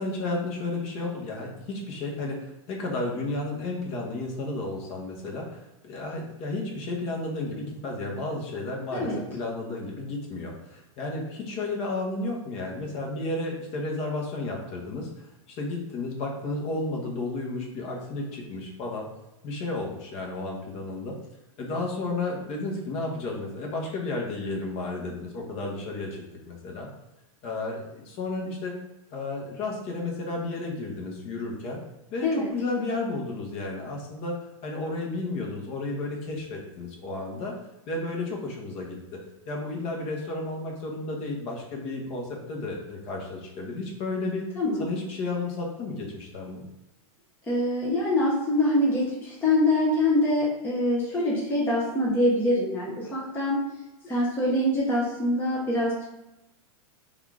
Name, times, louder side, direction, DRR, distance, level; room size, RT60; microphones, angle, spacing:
voice 1, 0.0-15.1 15.5-19.1 19.4-21.2 21.6-26.9 27.4-28.7 29.1-31.8 32.1-34.4 34.6-37.5 37.9-39.2 39.5-44.5 44.8-46.6, left 2 dB, 35° left, -1 dB, 0.9 m, -32 dB
voice 2, 44.6-44.9 47.5-53.6 54.0-56.0, left 1 dB, 10° left, -5 dB, 0.7 m, -24 dB
3.5 x 2.4 x 4.6 m, 0.94 s
hypercardioid pair, 140°, 18 cm